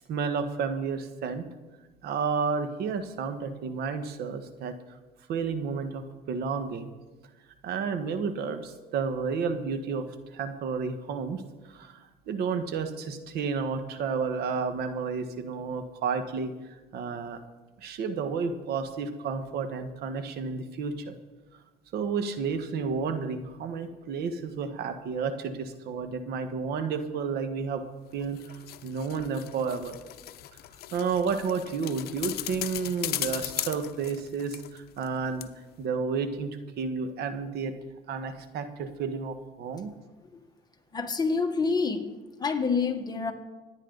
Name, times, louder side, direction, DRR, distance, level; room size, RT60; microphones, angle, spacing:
voice 1, 0.1-1.4 2.0-4.7 5.3-6.9 7.6-10.1 10.3-17.4 17.8-21.1 21.9-27.8 28.1-30.0 30.9-35.5 35.8-37.7 38.1-39.9, right 5 dB, 70° right, 9 dB, 1.4 m, -31 dB
sound 1, 28.1-35.1 35.4-35.5, left 14 dB, 70° left, 0.7 m, -37 dB
voice 2, 40.9-42.1 42.4-43.3, left 4 dB, 25° left, 5 dB, 1.5 m, -27 dB
25.0 x 9.7 x 4.0 m, 1.2 s
cardioid pair, 110°, 17 cm